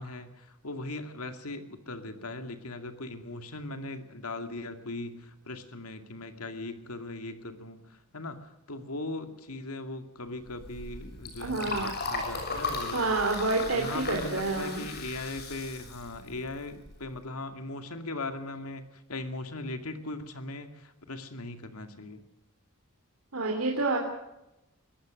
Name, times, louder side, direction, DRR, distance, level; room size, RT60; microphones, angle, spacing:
voice 1, 0.0-13.1 13.7-22.2, left 2 dB, 80° left, 8 dB, 2.3 m, -39 dB
Liquid, 10.4-17.1, left 3 dB, 50° left, 6.5 m, -37 dB
voice 2, 11.4-11.9 12.9-14.8 23.3-24.0, right 3 dB, 70° right, 1 dB, 3.1 m, -28 dB
23.0 x 18.0 x 6.4 m, 0.92 s
head